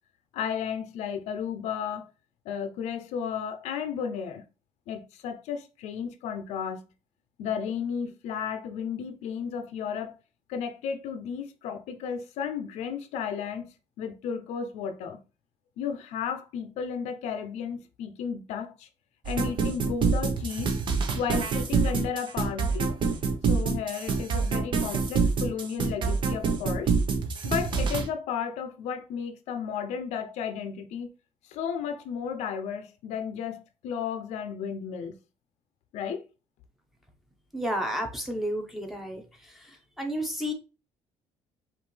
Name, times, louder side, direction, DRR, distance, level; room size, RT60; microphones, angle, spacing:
voice 1, 0.3-2.1 2.5-4.4 4.9-6.8 7.4-10.2 10.5-15.2 15.8-18.9 19.2-20.7 21.1-22.9 23.5-26.9 27.4-31.1 31.5-35.2 35.9-36.2, left 7 dB, 80° left, 0.6 m, -33 dB
sound 1, 19.2-28.0, right 5 dB, 45° right, 0.9 m, -26 dB
voice 2, 37.5-39.2 39.5-39.7 40.0-40.5, equal, ahead, 1.1 m, -31 dB
5.3 x 2.6 x 3.2 m
cardioid pair, 120°, 11 cm